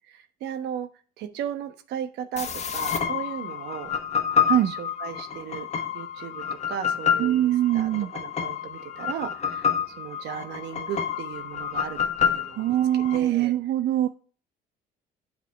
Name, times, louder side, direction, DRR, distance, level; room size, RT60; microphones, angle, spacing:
voice 1, 0.1-0.9 1.2-4.0 4.3-5.7 5.9-13.5, right 9 dB, 85° right, 8 dB, 1.1 m, -36 dB
sound 1, 2.4-13.2, left 7 dB, 40° left, 1.3 m, -28 dB
voice 2, 7.2-8.1 12.6-14.1, right 12 dB, 65° right, 9 dB, 0.5 m, -23 dB
8.4 x 5.0 x 4.6 m, 0.39 s
cardioid pair, 110°, 17 cm